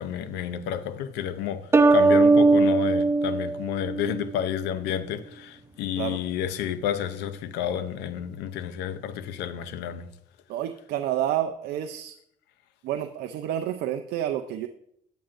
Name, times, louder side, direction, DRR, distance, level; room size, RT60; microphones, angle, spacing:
voice 1, 0.0-10.1, left 9 dB, 90° left, 0.6 m, -30 dB
sound 1, 1.7-4.4, right 3 dB, 15° right, 0.4 m, -20 dB
voice 2, 10.5-12.2 12.8-14.7, right 11 dB, 75° right, 0.5 m, -29 dB
9.0 x 8.6 x 2.6 m
cardioid pair, 110°, 17 cm